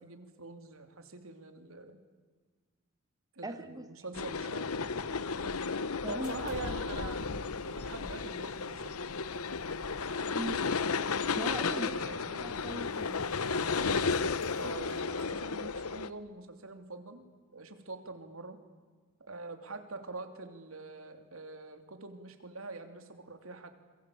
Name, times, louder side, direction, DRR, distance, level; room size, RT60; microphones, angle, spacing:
voice 1, 0.0-2.0 3.3-4.8 6.1-7.2 7.7-9.0 11.7-12.4 14.5-17.2 17.5-18.6 19.2-23.7, right 3 dB, 75° right, 7 dB, 3.1 m, -44 dB
voice 2, 3.4-4.0 6.0-6.5 10.3-10.7 11.4-11.9 12.4-13.5, right 1 dB, 15° right, 9 dB, 1.0 m, -40 dB
northbound freight, 4.1-16.1, left 5 dB, 90° left, 0.9 m, -33 dB
sound 1, 6.0-15.3, left 2 dB, 70° left, 2.2 m, -52 dB
28.0 x 22.5 x 8.6 m, 1.5 s
head